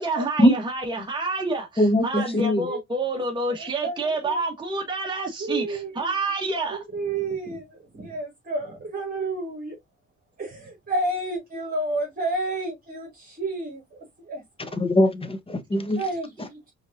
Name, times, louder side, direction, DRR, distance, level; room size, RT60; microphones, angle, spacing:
voice 1, 0.0-6.8, right 2 dB, 15° right, 1.3 m, -28 dB
voice 2, 1.8-2.7 14.6-16.0 16.4-16.5, left 1 dB, 20° left, 1.0 m, -21 dB
voice 3, 3.6-4.4 5.4-6.1 6.9-9.8 10.4-14.7 16.0-16.3, right 2 dB, 30° right, 2.0 m, -31 dB
5.1 x 3.5 x 2.5 m
cardioid pair, 90°, 30 cm